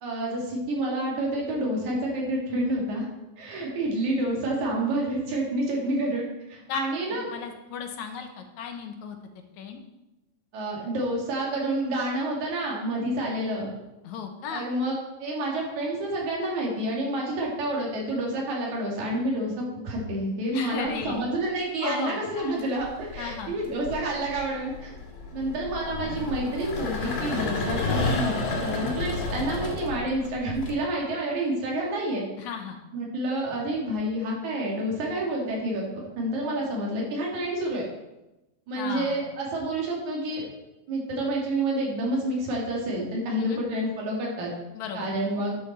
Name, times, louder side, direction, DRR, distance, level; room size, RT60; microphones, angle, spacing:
voice 1, 0.0-3.1 3.4-7.3 10.5-13.7 14.5-24.9 25.3-32.2 32.9-35.9 36.2-37.9 38.7-40.5 40.9-44.5 44.9-45.6, right 1 dB, 80° right, -2 dB, 3.5 m, -29 dB
voice 2, 7.1-9.2 9.5-9.8 14.0-14.7 20.5-21.2 21.8-22.6 23.2-23.6 32.4-32.8 38.8-39.3 43.4-43.6 44.7-45.1, left 6 dB, 80° left, 5 dB, 2.3 m, -35 dB
sound 1, 20.8-21.3 22.4-30.7, left 3 dB, 60° left, 2.6 m, -31 dB
11.0 x 7.0 x 4.2 m, 0.99 s
omnidirectional pair, 3.3 m